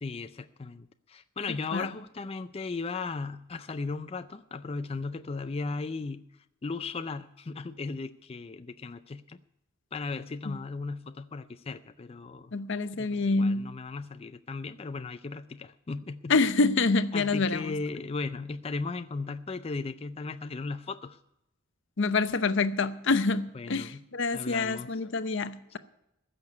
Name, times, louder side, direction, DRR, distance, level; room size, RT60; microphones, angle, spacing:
voice 1, 0.0-6.2 6.6-9.4 9.9-12.5 13.0-16.3 17.1-21.2 23.5-24.0 24.3-24.9, left 4 dB, 30° left, 10 dB, 0.4 m, -36 dB
voice 2, 12.5-13.7 16.3-17.7 22.0-25.8, left 3 dB, 60° left, 12 dB, 0.7 m, -27 dB
15.5 x 6.8 x 9.4 m, 0.84 s
head